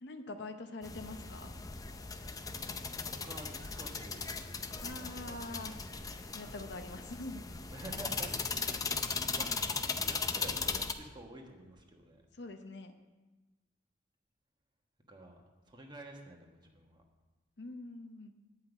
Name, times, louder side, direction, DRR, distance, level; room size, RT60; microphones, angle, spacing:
voice 1, 0.0-1.5 4.8-5.7 6.3-7.4 12.4-12.9 17.6-18.3, left 2 dB, 65° left, 7 dB, 0.8 m, -44 dB
sound 1, 0.8-10.9, left 4 dB, 20° left, 0.5 m, -38 dB
voice 2, 3.1-4.3 4.7-5.4 7.7-8.4 8.9-12.2 15.1-17.0, right 1 dB, 25° right, 1 dB, 1.4 m, -50 dB
9.8 x 5.7 x 8.1 m, 1.2 s
head